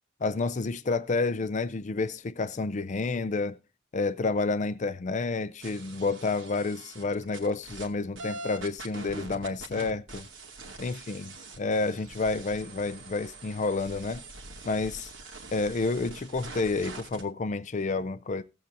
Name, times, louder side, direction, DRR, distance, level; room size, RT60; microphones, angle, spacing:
voice 1, 0.2-3.6 3.9-10.3 10.8-14.2 14.6-15.1 15.5-18.4, left 3 dB, 40° left, 0.5 m, -30 dB
sound 1, 5.6-7.9 8.2-17.2, right 3 dB, 90° right, 2.4 m, -44 dB
18.5 x 7.9 x 2.6 m
head